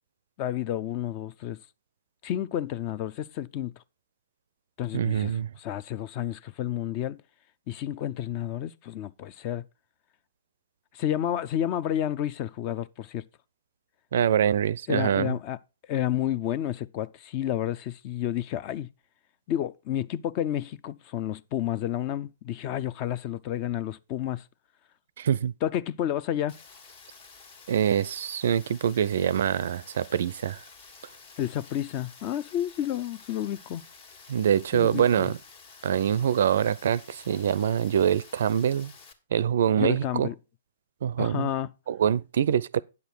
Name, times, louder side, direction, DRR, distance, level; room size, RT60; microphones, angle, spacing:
voice 1, 0.4-1.6 2.2-3.7 4.8-7.2 7.7-9.6 10.9-13.2 14.9-15.6 15.9-18.9 19.5-24.4 25.6-26.6 31.4-33.8 34.7-35.3 39.8-40.3 41.2-41.7, left 11 dB, 35° left, 0.5 m, -30 dB
voice 2, 4.9-5.5 14.1-15.4 25.2-25.5 27.7-30.6 34.3-35.4 35.8-38.9 39.3-40.3 41.0-41.5 41.9-42.8, right 9 dB, 60° right, 0.4 m, -24 dB
Rain, 26.5-39.1, left 5 dB, 55° left, 1.7 m, -51 dB
9.6 x 6.7 x 4.5 m
figure-of-eight pair, 115°, 0 cm